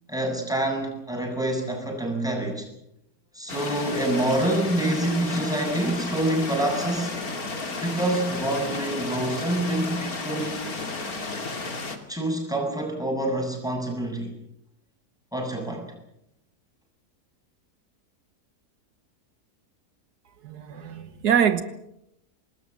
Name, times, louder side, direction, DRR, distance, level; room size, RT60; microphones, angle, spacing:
voice 1, 0.1-2.7 3.3-7.1 7.8-10.6 12.1-14.4 15.3-15.9, right 1 dB, ahead, 7.7 m, -27 dB
sound 1, 3.5-12.0, left 3 dB, 65° left, 3.2 m, -33 dB
voice 2, 20.4-21.6, right 8 dB, 85° right, 1.9 m, -24 dB
26.0 x 20.5 x 7.6 m
omnidirectional pair, 1.7 m